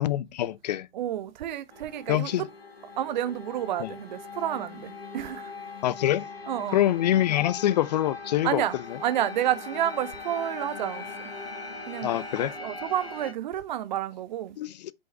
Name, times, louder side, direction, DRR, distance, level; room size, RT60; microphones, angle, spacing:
voice 1, 0.0-0.9 2.1-2.4 3.8-3.9 5.8-6.3 6.7-8.6 12.0-12.5 14.6-14.9, left 13 dB, 45° left, 0.5 m, -25 dB
voice 2, 0.9-2.5 3.0-5.5 6.5-6.9 8.4-8.8 9.0-11.0 11.9-14.6, right 11 dB, 50° right, 0.7 m, -30 dB
sound 1, 1.7-13.3, left 4 dB, 80° left, 1.6 m, -40 dB
Bowed string instrument, 9.1-13.6, right 5 dB, 10° right, 0.9 m, -49 dB
5.5 x 5.3 x 3.3 m
figure-of-eight pair, 110°, 30 cm